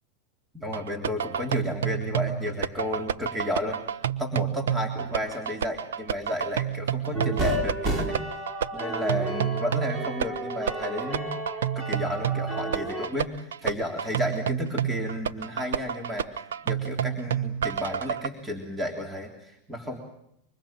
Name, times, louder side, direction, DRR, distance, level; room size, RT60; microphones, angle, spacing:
voice 1, 0.5-3.8 4.2-8.2 8.7-11.4 11.8-16.3 16.6-20.0, left 1 dB, 10° right, 2 dB, 3.5 m, -32 dB
sound 1, 0.7-18.3, right 9 dB, 90° right, 0.9 m, -30 dB
sound 2, 7.1-13.1, right 1 dB, 30° right, 4.2 m, -32 dB
25.0 x 24.5 x 7.4 m, 0.79 s
supercardioid pair, 125°, 0 cm